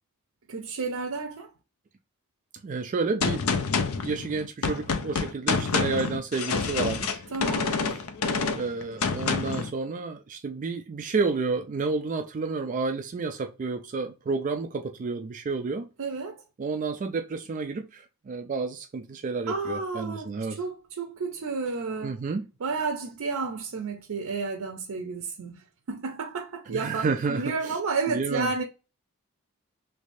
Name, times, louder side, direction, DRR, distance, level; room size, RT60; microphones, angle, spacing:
voice 1, 0.5-1.5 7.3-7.7 16.0-16.4 19.5-22.1 22.6-25.6 25.9-28.6, right 4 dB, 85° right, 0.5 m, -31 dB
voice 2, 2.6-3.4 3.8-7.2 8.6-15.9 16.6-20.6 22.0-22.4 26.7-27.8 28.1-28.5, right 4 dB, 35° right, 0.3 m, -30 dB
Gunshot gunfire, 3.2-9.7, left 5 dB, 75° left, 0.5 m, -27 dB
3.3 x 3.2 x 2.6 m
head